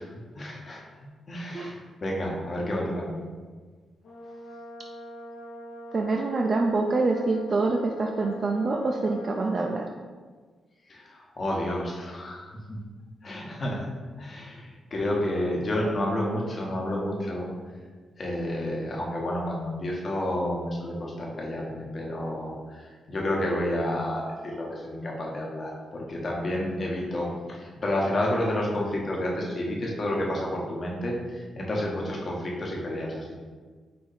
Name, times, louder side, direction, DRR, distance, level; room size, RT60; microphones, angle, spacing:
voice 1, 0.3-0.8 1.3-3.1 10.9-12.8 13.2-13.8 14.2-17.5 18.2-33.4, left 1 dB, 40° left, -2 dB, 1.0 m, -30 dB
Brass instrument, 4.0-9.9, right 1 dB, 70° left, 0.7 m, -42 dB
voice 2, 5.9-9.9, right 3 dB, 40° right, 1 dB, 0.3 m, -26 dB
4.1 x 2.7 x 4.0 m, 1.5 s
cardioid pair, 105°, 0 cm